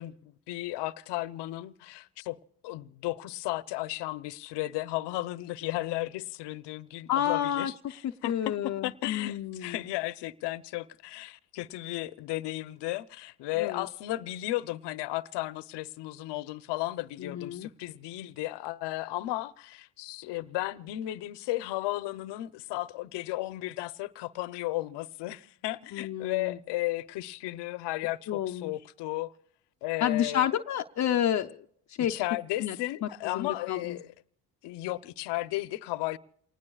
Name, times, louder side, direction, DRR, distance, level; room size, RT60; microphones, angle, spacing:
voice 1, 0.0-2.4 2.6-29.3 29.8-30.5 32.1-34.1 34.6-36.2, left 17 dB, 75° left, 0.8 m, -34 dB
voice 2, 7.1-7.7 8.2-9.8 13.6-13.9 17.2-17.7 25.9-26.6 28.3-28.7 30.0-32.1 32.6-34.0, left 10 dB, 40° left, 0.7 m, -30 dB
28.0 x 19.5 x 2.4 m
cardioid pair, 105°, 42 cm